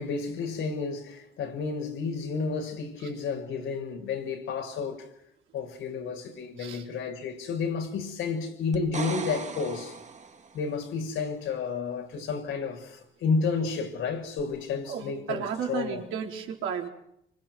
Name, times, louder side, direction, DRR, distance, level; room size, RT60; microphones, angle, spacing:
voice 1, 0.0-5.1 5.5-10.0 10.5-16.0, left 5 dB, 85° left, 6.8 m, -31 dB
sound 1, 8.7-10.7 14.4-14.5, right 4 dB, 35° right, 2.1 m, -38 dB
voice 2, 14.9-16.9, right 7 dB, 90° right, 4.5 m, -33 dB
26.5 x 25.0 x 6.3 m
cardioid pair, 90°, 20 cm